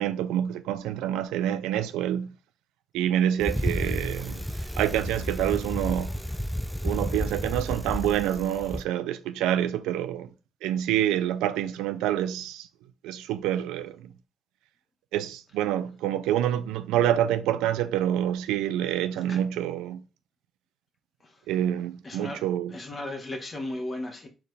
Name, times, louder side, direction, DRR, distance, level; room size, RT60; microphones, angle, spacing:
voice 1, 0.0-2.3 2.9-4.5 4.8-6.1 6.8-10.3 10.6-12.7 13.0-14.1 15.1-20.0 21.5-22.8, right 11 dB, 85° right, 0.5 m, -27 dB
Bicycle, 3.4-8.8, equal, ahead, 0.5 m, -31 dB
voice 2, 22.0-22.4 22.7-24.3, left 1 dB, 35° left, 1.4 m, -35 dB
4.4 x 3.4 x 3.3 m
supercardioid pair, 60°, 0 cm